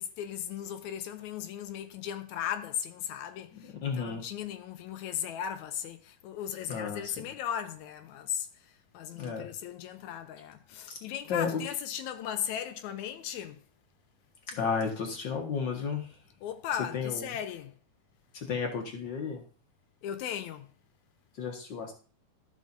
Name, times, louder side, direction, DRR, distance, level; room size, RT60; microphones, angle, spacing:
voice 1, 0.0-8.5 8.9-13.6 16.4-17.7 20.0-20.7, left 9 dB, 90° left, 2.1 m, -37 dB
voice 2, 3.5-4.2 6.7-7.3 9.2-9.5 10.9-11.0 11.3-11.6 14.5-16.1 16.9-17.3 18.3-19.4 21.4-21.9, left 6 dB, 50° left, 1.7 m, -33 dB
12.5 x 6.5 x 2.7 m
omnidirectional pair, 3.3 m